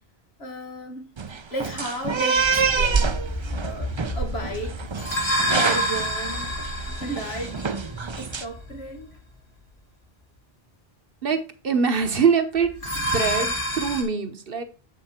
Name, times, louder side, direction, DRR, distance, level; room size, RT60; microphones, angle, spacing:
voice 1, 0.4-1.1 1.5-3.2 3.6-4.8 5.5-6.5 6.9-7.7 8.2-9.2, right 1 dB, 85° left, 2.1 m, -34 dB
sound 1, 1.2-8.4, right 5 dB, 35° right, 0.5 m, -27 dB
sound 2, 2.4-9.0 12.7-14.0, equal, 60° left, 2.9 m, -29 dB
voice 2, 11.2-12.7 13.1-14.6, right 5 dB, 65° right, 1.3 m, -23 dB
7.7 x 5.9 x 4.3 m
omnidirectional pair, 1.0 m